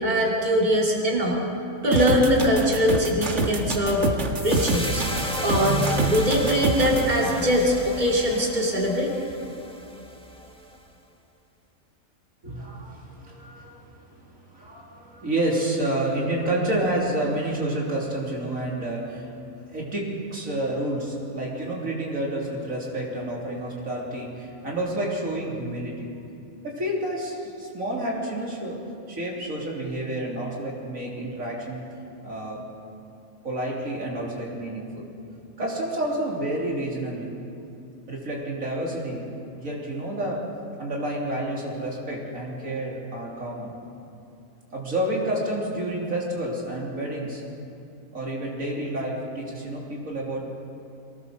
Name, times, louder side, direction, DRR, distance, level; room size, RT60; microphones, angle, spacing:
voice 1, 0.0-1.4 1.8-4.0 4.4-5.0 5.4-9.1, equal, 35° right, -3 dB, 3.1 m, -22 dB
sound 1, 1.9-7.0, right 2 dB, 60° right, 2.0 m, -26 dB
sound 2, 4.4-10.8, left 1 dB, 5° left, 1.5 m, -34 dB
voice 2, 12.4-19.3 19.7-26.2 26.6-28.8 29.1-31.9 32.2-32.6 33.4-35.1 35.6-37.4 38.1-39.2 39.6-40.5 40.8-43.7 44.7-47.4 48.1-50.5, right 1 dB, 75° right, -3 dB, 3.7 m, -29 dB
23.0 x 19.0 x 6.6 m, 2.6 s
omnidirectional pair, 1.4 m